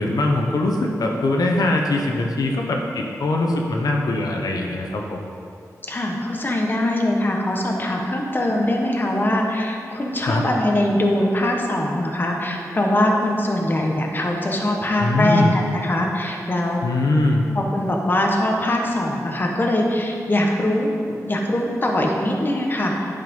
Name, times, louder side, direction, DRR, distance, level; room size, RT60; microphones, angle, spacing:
voice 1, 0.0-5.3 10.2-10.4 15.0-15.5 16.8-17.4, left 2 dB, 90° left, 0 dB, 0.9 m, -21 dB
voice 2, 5.9-16.8 17.5-22.9, left 1 dB, 35° left, 0 dB, 1.2 m, -22 dB
11.0 x 5.8 x 5.4 m, 2.5 s
wide cardioid pair, 105°, 6 cm